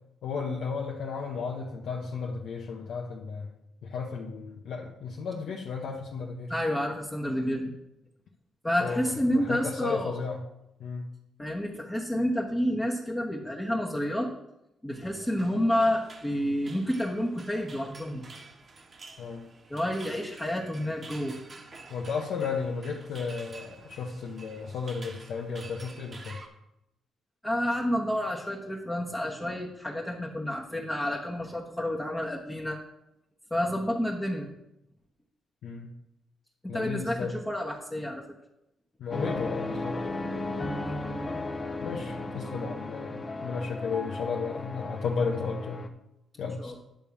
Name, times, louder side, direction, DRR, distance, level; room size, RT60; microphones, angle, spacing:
voice 1, 0.2-3.5 3.8-6.5 8.8-9.0 9.3-10.4 10.8-11.1 19.2-19.5 21.9-26.4 35.6-35.9 36.7-37.3 39.0-40.0 41.8-45.9 46.4-46.8, left 5 dB, 70° left, -1 dB, 0.9 m, -34 dB
voice 2, 6.5-7.7 8.6-10.2 11.4-14.3 14.8-18.3 19.7-21.4 27.4-32.8 33.5-34.5 36.6-38.2 40.8-41.0 46.6-46.8, equal, 15° left, -3 dB, 1.2 m, -29 dB
sound 1, 14.9-26.5, right 3 dB, 40° right, 1.3 m, -49 dB
sound 2, 39.1-45.9, left 2 dB, 30° left, 1.0 m, -35 dB
10.0 x 3.6 x 7.0 m, 0.88 s
cardioid pair, 75°, 0 cm